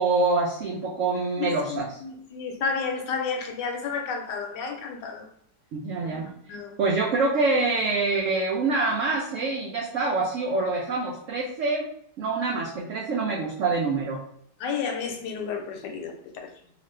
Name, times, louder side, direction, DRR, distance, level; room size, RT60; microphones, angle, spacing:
voice 1, 0.0-2.0 5.7-6.3 6.8-11.9 12.2-14.2, right 3 dB, 85° right, 0.6 m, -25 dB
voice 2, 1.4-5.2 6.0-6.2 6.5-6.7 14.6-16.5, left 5 dB, 80° left, 1.2 m, -31 dB
2.9 x 2.4 x 3.1 m
omnidirectional pair, 1.9 m